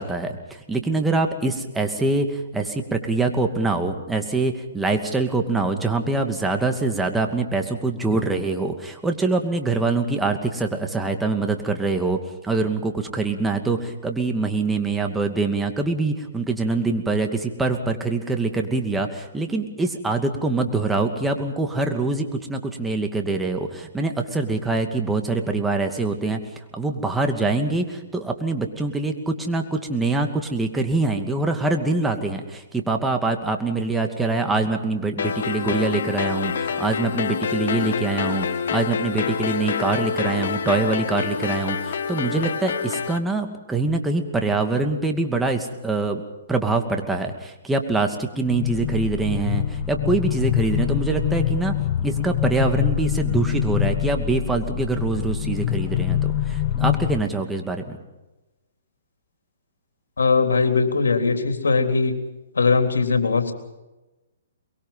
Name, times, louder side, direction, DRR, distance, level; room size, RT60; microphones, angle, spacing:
voice 1, 0.0-12.2 12.4-26.4 26.7-46.2 46.5-51.7 52.0-58.0, right 3 dB, 5° right, 4 dB, 2.5 m, -24 dB
sound 1, 35.2-43.2, left 6 dB, 65° left, 1.7 m, -27 dB
sound 2, 48.4-57.2, left 11 dB, 40° left, 1.3 m, -25 dB
voice 2, 60.2-62.1 62.6-63.5, left 4 dB, 85° left, 6 dB, 3.6 m, -20 dB
23.5 x 22.5 x 5.8 m, 1.1 s
hypercardioid pair, 140°, 0 cm